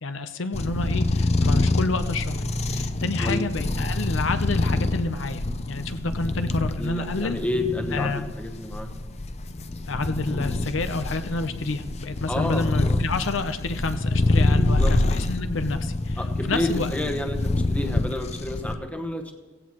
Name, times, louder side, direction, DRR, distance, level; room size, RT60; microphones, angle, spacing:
voice 1, 0.0-2.4 2.7-7.4 7.9-8.3 9.8-16.2 16.5-16.9, left 3 dB, 75° left, 9 dB, 0.7 m, -29 dB
sound 1, 0.5-18.7, left 2 dB, 35° left, 0.6 m, -26 dB
voice 2, 6.8-8.9 12.3-13.0 14.6-14.9 16.2-19.3, left 1 dB, 5° left, 4 dB, 1.1 m, -30 dB
17.0 x 16.0 x 3.1 m, 1.3 s
head